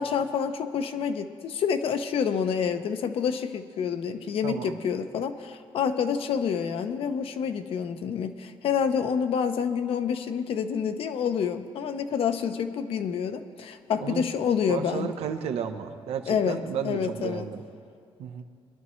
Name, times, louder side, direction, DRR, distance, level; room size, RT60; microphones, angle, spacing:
voice 1, 0.0-15.1 16.3-17.5, left 7 dB, 70° left, 8 dB, 0.7 m, -28 dB
voice 2, 4.4-4.8 14.0-14.2 14.7-17.6 18.2-18.4, right 7 dB, 90° right, 6 dB, 0.8 m, -33 dB
22.0 x 11.0 x 3.1 m, 2.4 s
cardioid pair, 120°, 10 cm